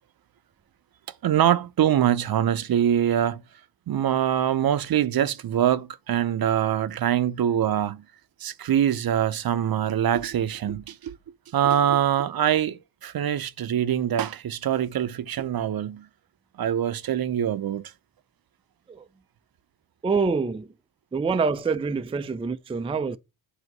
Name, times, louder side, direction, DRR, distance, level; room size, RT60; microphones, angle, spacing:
voice 1, 1.2-3.4 3.9-8.0 8.4-11.2 11.5-16.1 16.6-17.9, right 10 dB, 55° right, 0.7 m, -24 dB
voice 2, 20.0-20.7 21.1-23.2, right 4 dB, 15° right, 0.4 m, -26 dB
8.0 x 2.8 x 5.2 m
cardioid pair, 95°, 42 cm